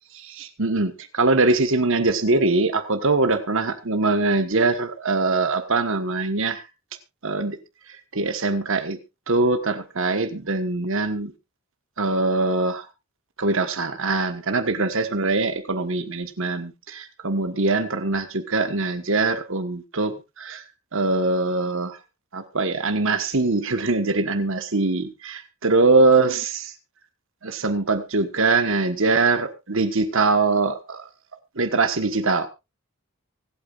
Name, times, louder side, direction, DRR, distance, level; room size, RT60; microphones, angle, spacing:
voice 1, 0.1-6.6 7.2-7.6 8.1-9.0 9.3-11.3 12.0-12.8 13.4-20.6 20.9-22.0 22.3-26.7 27.4-31.1 31.5-32.5, right 3 dB, 60° right, 9 dB, 1.4 m, -22 dB
24.5 x 8.7 x 2.5 m, 0.24 s
head